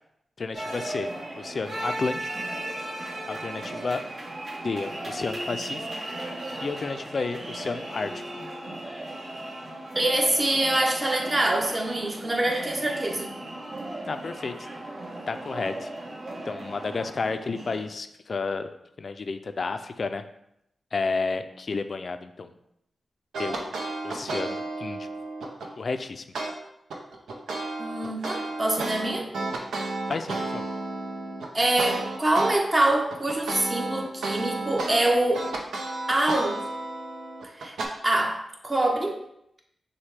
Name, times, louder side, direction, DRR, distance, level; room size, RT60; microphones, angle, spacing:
voice 1, 0.4-2.3 3.3-4.0 4.6-5.9 6.6-8.2 14.1-14.7 15.3-15.9 16.5-20.2 20.9-22.5 23.4-23.8 24.0-25.1 25.8-26.2 30.1-30.7, left 4 dB, 60° left, 9 dB, 0.4 m, -31 dB
sound 1, 0.5-17.9, right 1 dB, 60° right, 1.2 m, -36 dB
voice 2, 9.9-13.3 27.8-29.3 31.5-35.5 36.1-36.6 37.6-37.7 38.0-39.2, right 1 dB, 35° right, 0 dB, 1.0 m, -25 dB
sound 2, 23.3-25.7 26.3-26.5 26.9-32.5 32.9-37.9, right 2 dB, 85° right, 0.6 m, -32 dB
6.3 x 2.2 x 3.3 m, 0.79 s
cardioid pair, 45°, 0 cm